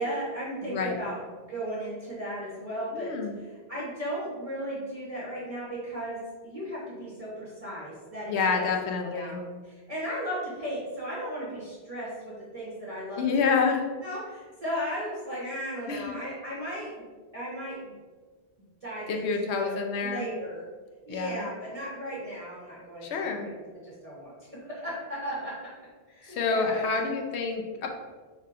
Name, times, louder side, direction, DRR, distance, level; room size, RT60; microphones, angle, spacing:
voice 1, 0.0-8.6 9.0-13.2 14.0-16.9 17.3-17.9 18.8-20.6 21.1-23.5 23.8-25.5 26.1-27.2, equal, 35° right, -7 dB, 1.0 m, -36 dB
voice 2, 0.6-1.0 2.9-3.3 8.3-9.4 13.2-13.8 15.9-16.2 19.1-20.3 21.1-21.4 23.0-23.5 26.3-27.9, left 5 dB, 85° left, 2 dB, 0.9 m, -28 dB
5.4 x 3.4 x 2.5 m, 1.4 s
omnidirectional pair, 1.1 m